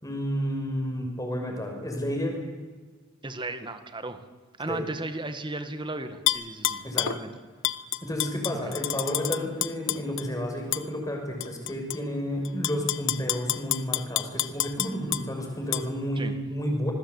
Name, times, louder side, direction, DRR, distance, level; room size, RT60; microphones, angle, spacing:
voice 1, 0.0-2.4 4.7-4.8 6.8-7.1 8.0-16.9, equal, 15° left, 2 dB, 6.1 m, -31 dB
voice 2, 3.2-4.2 4.6-7.3 8.7-8.8 16.2-16.3, right 2 dB, 20° right, 9 dB, 1.8 m, -35 dB
Tap / Glass, 6.3-7.2 7.6-10.3 10.7-10.9 11.4-12.0 12.5-15.2 15.7-15.8, left 13 dB, 60° left, 0.9 m, -28 dB
27.0 x 21.0 x 8.4 m, 1.5 s
head